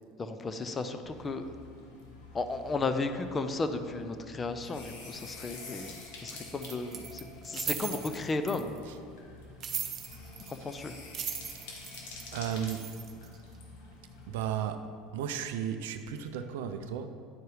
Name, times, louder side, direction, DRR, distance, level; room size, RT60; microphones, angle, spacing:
voice 1, 0.2-1.4 2.3-8.7 10.5-10.9, left 3 dB, 25° left, 8 dB, 0.6 m, -34 dB
sound 1, 1.0-14.5, left 3 dB, 70° left, 1.3 m, -48 dB
sound 2, 6.6-8.8 9.6-10.7 11.0-13.4, right 8 dB, 45° right, 0.9 m, -38 dB
voice 2, 12.3-12.8 14.3-14.8 15.1-17.1, right 9 dB, 75° right, 8 dB, 0.4 m, -34 dB
9.6 x 4.6 x 4.8 m, 2.3 s
hypercardioid pair, 80°, 0 cm